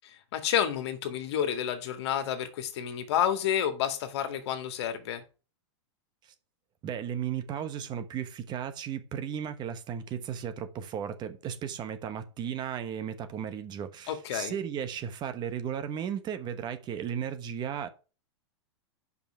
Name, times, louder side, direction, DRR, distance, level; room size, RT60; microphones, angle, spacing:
voice 1, 0.1-5.2 14.1-14.5, left 9 dB, 65° left, 1.9 m, -30 dB
voice 2, 6.8-17.9, right 8 dB, 30° right, 1.2 m, -35 dB
6.9 x 5.6 x 6.8 m
hypercardioid pair, 130°, 15 cm